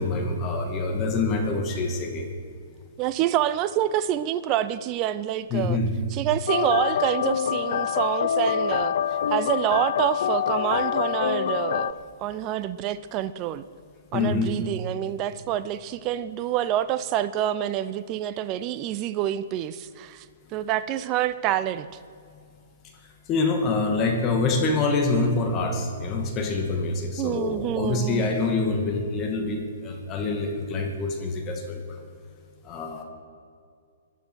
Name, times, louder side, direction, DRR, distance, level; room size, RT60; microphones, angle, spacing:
voice 1, 0.0-2.3 5.5-5.9 14.1-14.5 23.3-31.8 32.6-33.0, left 3 dB, 30° left, 3 dB, 2.3 m, -26 dB
voice 2, 3.0-5.8 6.1-8.9 9.3-13.6 14.1-20.3 20.5-21.9 27.2-28.3, right 12 dB, 35° right, 14 dB, 0.6 m, -27 dB
sound 1, 6.5-11.9, left 9 dB, 65° left, 0.6 m, -25 dB
17.5 x 11.5 x 6.3 m, 2.3 s
hypercardioid pair, 125°, 0 cm